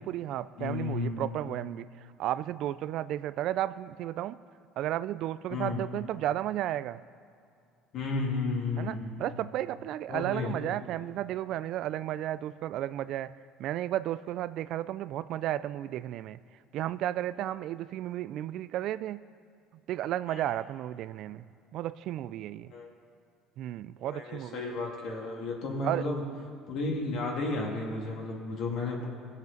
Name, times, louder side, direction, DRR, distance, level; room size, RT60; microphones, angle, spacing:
voice 1, 0.0-4.4 4.8-7.0 8.8-13.3 13.6-16.4 16.7-19.2 19.9-21.5 21.7-22.7 23.6-24.7 25.8-26.1, right 13 dB, 60° right, 16 dB, 0.3 m, -33 dB
voice 2, 0.6-1.4 5.5-5.8 7.9-9.2 10.1-10.5 20.3-20.4 22.7-22.9 24.0-26.2 26.7-29.1, left 3 dB, 60° left, -1 dB, 2.4 m, -33 dB
18.5 x 7.2 x 4.0 m, 2.4 s
supercardioid pair, 110°, 0 cm